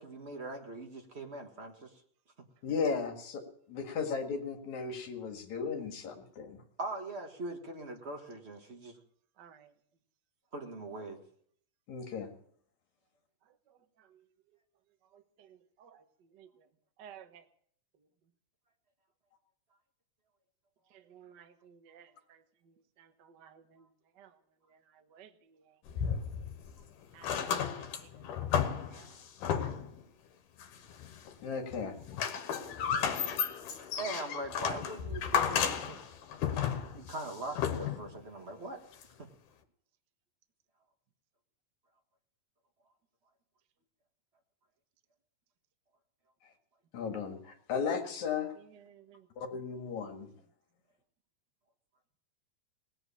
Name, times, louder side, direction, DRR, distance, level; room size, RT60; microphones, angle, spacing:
voice 1, 0.0-1.9 6.8-8.9 10.5-11.2 34.0-36.0 36.9-38.8, right 2 dB, 35° right, 3 dB, 1.1 m, -41 dB
voice 2, 2.6-3.4 3.7-6.6 11.9-12.3 31.4-32.0 46.9-48.5 49.4-50.3, left 5 dB, 65° left, 4 dB, 3.1 m, -35 dB
voice 3, 9.4-9.7 13.4-14.3 15.1-16.7 17.0-17.5 18.0-18.1 20.9-23.9 24.1-24.4 24.6-26.0 27.1-28.5 28.8-29.8 32.9-33.5 48.5-49.3, right 8 dB, 65° right, 7 dB, 1.1 m, -58 dB
sound 1, 25.9-26.8 27.1-30.0 30.6-31.4 31.7-38.2 39.0-39.1, left 8 dB, 80° left, 2.7 m, -33 dB
18.5 x 7.9 x 8.5 m, 0.63 s
omnidirectional pair, 3.7 m